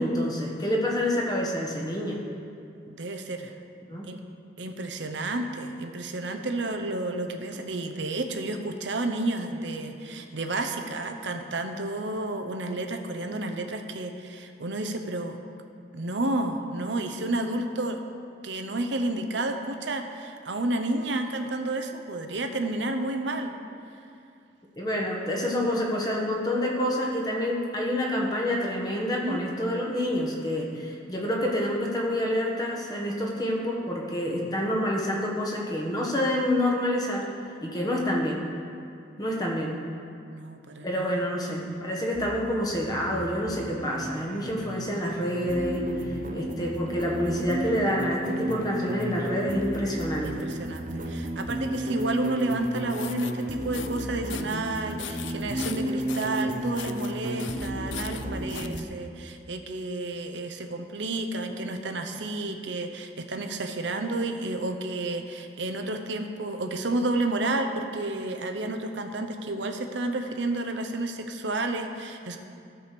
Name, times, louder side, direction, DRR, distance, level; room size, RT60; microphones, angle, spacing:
voice 1, 0.0-2.2 3.9-4.1 24.8-37.3 37.6-38.5 39.2-39.8 40.8-45.9 46.3-50.4, left 1 dB, 20° left, -2 dB, 1.3 m, -28 dB
voice 2, 2.9-3.5 4.0-4.2 4.6-15.4 15.9-18.0 18.4-23.5 29.2-29.5 40.3-41.3 50.4-72.4, right 2 dB, 75° right, 6 dB, 0.8 m, -31 dB
sound 1, 42.1-58.9, right 1 dB, 45° right, 0.8 m, -33 dB
sound 2, 52.8-53.3 53.7-54.0 54.3-54.6 55.0-56.4 56.8-57.1 57.4-58.8, left 10 dB, 85° left, 0.4 m, -40 dB
14.5 x 4.9 x 6.9 m, 2.5 s
head